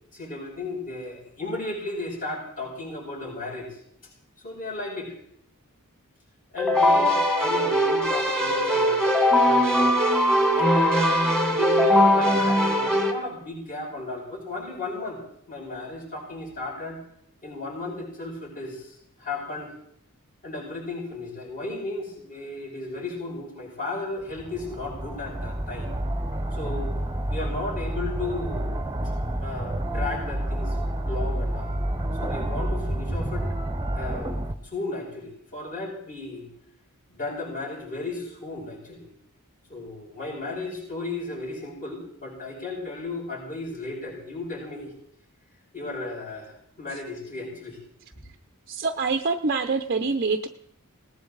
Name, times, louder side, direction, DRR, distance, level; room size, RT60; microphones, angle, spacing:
voice 1, 0.1-3.8 4.4-5.1 6.5-9.1 9.4-9.9 10.5-11.1 11.5-15.2 15.5-17.0 17.4-19.7 20.4-26.0 26.5-26.9 27.3-28.7 29.4-30.8 31.1-31.7 32.2-33.5 33.9-36.5 37.1-39.1 39.7-44.9 45.7-47.8, left 2 dB, 40° left, -4 dB, 7.6 m, -34 dB
Keyboard (musical), 6.6-13.1, equal, 5° left, 2.3 m, -20 dB
sound 1, 24.2-34.5, right 1 dB, 20° right, 1.0 m, -29 dB
voice 2, 48.7-50.5, right 4 dB, 45° right, 7 dB, 0.7 m, -25 dB
19.0 x 18.5 x 4.0 m, 0.71 s
head